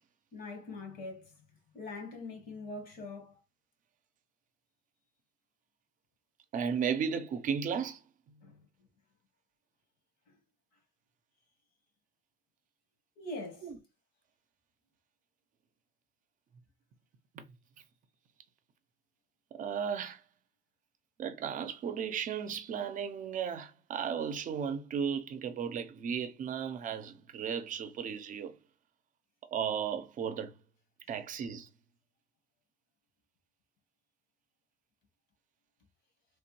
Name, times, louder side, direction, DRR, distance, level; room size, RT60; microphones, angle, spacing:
voice 1, 0.3-1.2 1.7-3.3 8.4-8.5 13.2-13.6, left 2 dB, 70° left, 1.3 m, -42 dB
voice 2, 6.5-8.0 8.3-8.6 13.6-13.8 17.3-17.5 19.5-20.2 21.2-28.6 29.5-30.5 31.1-31.7, right 7 dB, 50° right, 0.5 m, -35 dB
3.1 x 2.2 x 3.0 m
cardioid pair, 110°, 17 cm